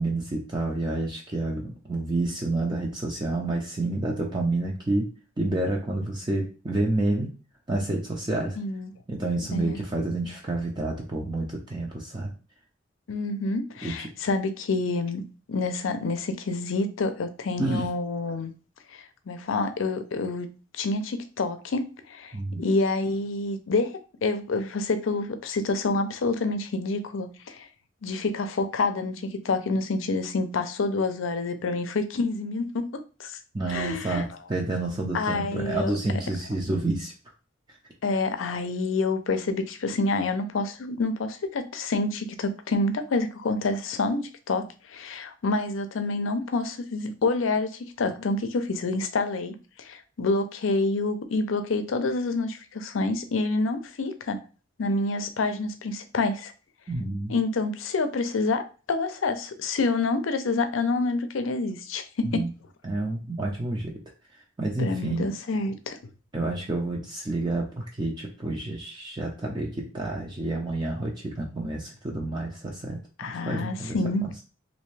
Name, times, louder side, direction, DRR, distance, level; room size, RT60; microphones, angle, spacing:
voice 1, 0.0-5.1 5.4-7.3 7.7-8.6 9.1-12.3 13.8-14.1 17.6-17.9 22.3-22.6 33.5-37.1 37.7-37.8 56.9-57.3 62.2-62.5 62.8-63.9 64.6-65.3 66.3-73.0 73.4-74.0, right 2 dB, 20° right, -1 dB, 0.5 m, -29 dB
voice 2, 8.6-8.9 9.5-9.8 13.1-15.2 15.5-18.5 18.9-20.5 20.8-27.7 28.0-33.4 33.7-34.2 35.1-35.9 38.0-54.4 54.8-56.5 57.3-62.5 64.8-66.0 73.2-74.2, left 3 dB, 80° left, 9 dB, 0.5 m, -28 dB
3.3 x 2.6 x 3.2 m, 0.35 s
head